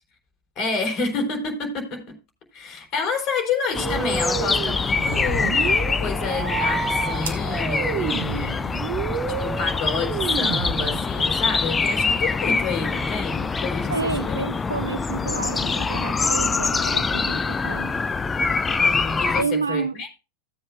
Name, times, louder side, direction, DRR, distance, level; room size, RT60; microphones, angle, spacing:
voice 1, 0.6-2.2 2.5-8.8 9.3-14.5 18.8-20.2, left 4 dB, 35° left, 3.7 m, -29 dB
sound 1, 3.7-19.4, left 4 dB, 15° left, 0.6 m, -24 dB
sound 2, 3.7-11.3, right 8 dB, 40° right, 1.3 m, -30 dB
sound 3, 5.0-11.8, right 5 dB, 60° right, 1.8 m, -46 dB
voice 2, 13.9-18.0 19.4-19.9, right 4 dB, 80° right, 0.4 m, -29 dB
16.5 x 7.9 x 2.3 m
figure-of-eight pair, 90°, 0 cm